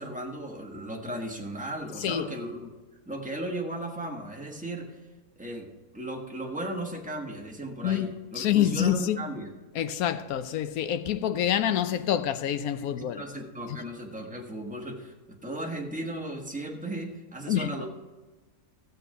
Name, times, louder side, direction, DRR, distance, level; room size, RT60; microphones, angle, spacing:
voice 1, 0.0-2.7 3.1-5.0 5.4-9.5 12.9-17.9, right 1 dB, 5° right, 1.2 m, -36 dB
voice 2, 8.4-9.2 9.7-13.2 17.5-17.7, left 11 dB, 80° left, 1.1 m, -26 dB
13.5 x 8.0 x 4.6 m
omnidirectional pair, 1.5 m